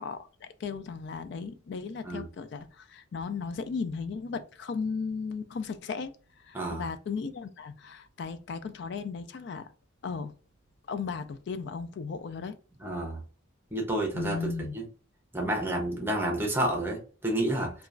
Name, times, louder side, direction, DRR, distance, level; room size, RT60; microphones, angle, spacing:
voice 1, 0.0-6.1 6.5-9.7 10.0-10.3 10.9-12.6 14.1-14.7, left 5 dB, 60° left, 0.3 m, -36 dB
voice 2, 6.5-6.9 12.8-13.2 13.7-14.9 15.3-17.7, right 1 dB, 10° right, 0.8 m, -30 dB
2.9 x 2.3 x 2.5 m
head